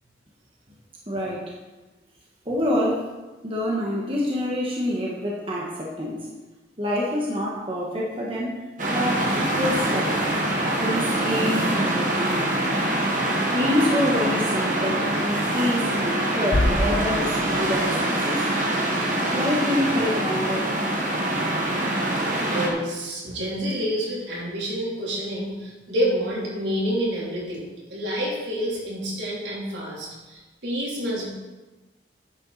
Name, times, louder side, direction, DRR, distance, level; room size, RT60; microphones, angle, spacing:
voice 1, 1.1-1.5 2.4-3.0 3.4-6.3 6.8-8.6 8.9-10.2 10.5-12.4 13.4-18.4 19.3-20.7, left 1 dB, 30° right, -3 dB, 1.5 m, -26 dB
sound 1, 8.8-22.7, right 1 dB, 45° right, 1.6 m, -24 dB
Bass drum, 16.5-18.2, left 1 dB, 65° left, 1.0 m, -26 dB
voice 2, 22.4-27.6 27.9-31.3, equal, 80° right, -5 dB, 3.7 m, -28 dB
10.5 x 8.9 x 4.2 m, 1.2 s
head